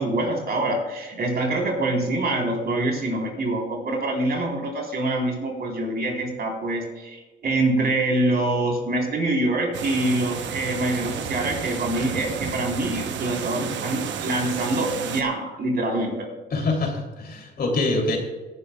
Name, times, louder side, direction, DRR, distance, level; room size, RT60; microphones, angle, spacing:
voice 1, 0.0-16.3, right 2 dB, 55° right, 0 dB, 3.9 m, -25 dB
sound 1, 9.7-15.2, right 8 dB, 70° right, 0.9 m, -32 dB
voice 2, 16.5-18.2, left 2 dB, 50° left, 1 dB, 3.1 m, -25 dB
18.0 x 11.0 x 2.3 m, 1.2 s
cardioid pair, 90°, 20 cm